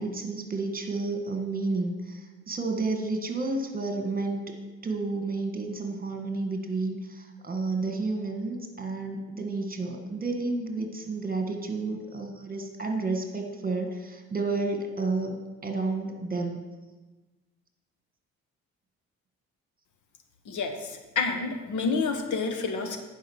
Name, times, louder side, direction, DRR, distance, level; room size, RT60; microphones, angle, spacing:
voice 1, 0.0-4.5 4.8-16.6, right 3 dB, 30° right, 4 dB, 1.7 m, -31 dB
voice 2, 20.5-23.0, left 4 dB, 75° left, 6 dB, 1.3 m, -29 dB
10.0 x 5.2 x 6.4 m, 1.2 s
cardioid pair, 90°, 30 cm